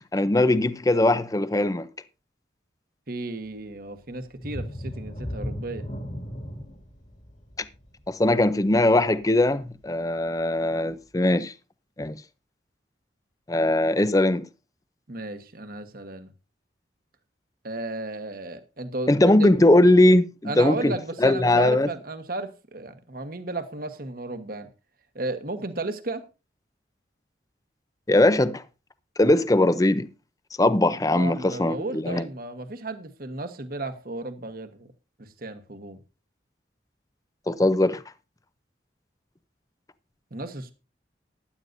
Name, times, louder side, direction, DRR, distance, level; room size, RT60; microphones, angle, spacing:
voice 1, 0.1-1.9 8.1-11.5 12.0-12.2 13.5-14.5 19.1-21.9 28.1-28.6 29.2-30.1 30.6-32.3 37.5-38.0, left 1 dB, 20° left, 0.5 m, -20 dB
voice 2, 3.1-5.9 15.1-16.3 17.6-19.5 20.4-24.7 25.1-26.2 31.1-34.9 35.2-36.0 40.3-40.7, right 2 dB, 55° right, 1.3 m, -34 dB
sound 1, 4.4-9.8 10.3-10.4 10.9-11.0, equal, 45° left, 2.1 m, -36 dB
15.5 x 11.0 x 2.6 m
head